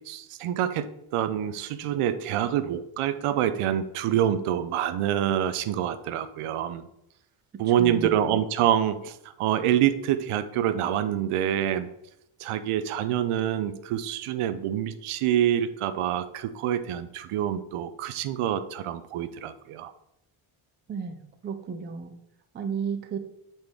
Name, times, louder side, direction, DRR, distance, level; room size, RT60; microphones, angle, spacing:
voice 1, 0.1-6.8 7.6-11.9 12.4-19.9, right 10 dB, 80° right, 12 dB, 0.7 m, -26 dB
voice 2, 7.6-8.2 20.9-22.1 22.5-23.2, right 6 dB, 25° right, 8 dB, 0.3 m, -33 dB
7.9 x 4.4 x 3.5 m, 0.83 s
cardioid pair, 160°, 50 cm